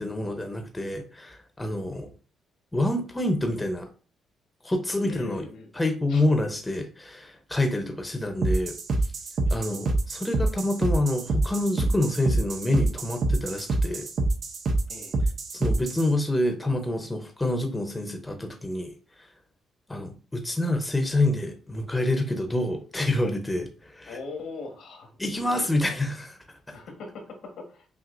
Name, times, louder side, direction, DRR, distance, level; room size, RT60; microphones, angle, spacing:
voice 1, 0.0-2.1 2.7-3.9 4.6-5.4 5.7-8.7 9.5-14.1 15.5-18.9 19.9-24.2 25.2-26.4 26.7-26.8, left 1 dB, 15° left, 4 dB, 0.7 m, -27 dB
voice 2, 5.0-5.7 6.1-6.2 9.5-9.6 14.9-15.3 24.1-25.7 26.7-27.9, left 4 dB, 75° left, 2 dB, 1.4 m, -41 dB
sound 1, 8.4-16.1, right 2 dB, 55° right, 0.7 m, -26 dB
5.8 x 2.5 x 2.5 m, 0.38 s
cardioid pair, 90°, 0 cm